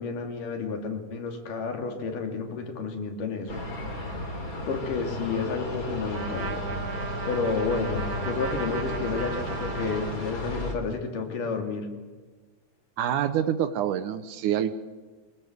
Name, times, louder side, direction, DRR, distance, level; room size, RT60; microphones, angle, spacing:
voice 1, 0.0-3.6 4.7-6.6 7.3-11.9, left 4 dB, 85° left, 4 dB, 4.2 m, -31 dB
sound 1, 3.5-10.7, left 1 dB, 25° left, 3.7 m, -34 dB
Trumpet, 6.1-10.7, right 6 dB, 60° right, 0.9 m, -37 dB
voice 2, 13.0-14.7, right 10 dB, 75° right, 11 dB, 2.3 m, -26 dB
24.5 x 21.5 x 7.9 m, 1.4 s
omnidirectional pair, 3.7 m